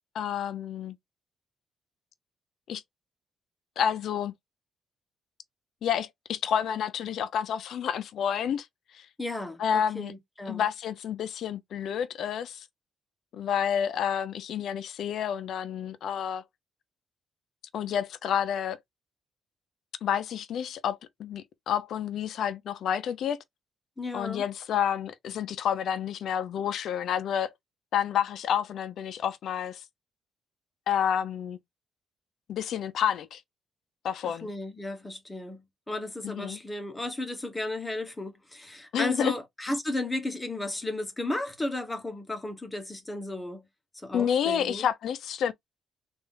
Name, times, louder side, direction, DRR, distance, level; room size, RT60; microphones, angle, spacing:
voice 1, 0.1-1.0 2.7-2.8 3.8-4.3 5.8-8.7 8.9-9.0 9.6-10.1 10.5-12.7 13.3-16.4 17.7-18.8 20.0-23.4 24.1-27.5 27.9-29.8 30.9-31.6 32.5-33.4 34.0-34.5 36.2-36.6 38.9-39.3 44.1-45.5, left 9 dB, 70° left, 0.5 m, -29 dB
voice 2, 9.2-10.6 24.0-24.4 34.2-43.7 43.9-44.9, left 2 dB, 15° left, 0.9 m, -34 dB
3.3 x 2.5 x 3.5 m
cardioid pair, 90°, 0 cm